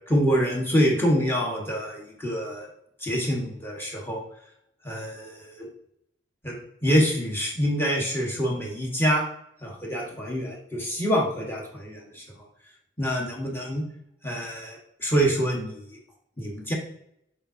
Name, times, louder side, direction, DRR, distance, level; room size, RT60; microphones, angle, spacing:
voice 1, 0.1-2.7 3.0-4.2 4.8-5.7 6.4-9.2 9.6-12.2 13.0-13.8 14.2-16.0 16.4-16.7, equal, 15° left, -2 dB, 1.5 m, -26 dB
7.0 x 4.9 x 2.8 m, 0.74 s
head